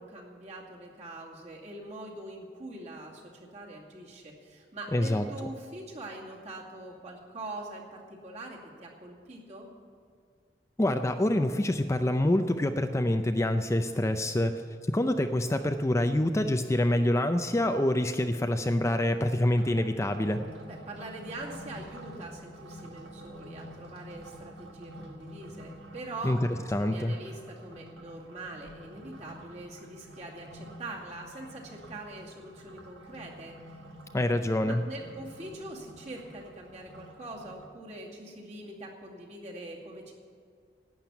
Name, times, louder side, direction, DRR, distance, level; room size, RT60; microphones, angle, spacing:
voice 1, 0.0-9.7 20.6-26.4 26.8-33.5 34.6-40.1, right 2 dB, 40° right, -2 dB, 2.3 m, -43 dB
voice 2, 4.9-5.2 10.8-14.5 14.9-20.4 26.2-26.4 26.7-27.1 34.1-34.8, left 1 dB, 15° left, 7 dB, 0.5 m, -26 dB
sound 1, 19.5-37.7, right 1 dB, 75° right, 1.7 m, -48 dB
11.5 x 8.9 x 9.6 m, 2.2 s
head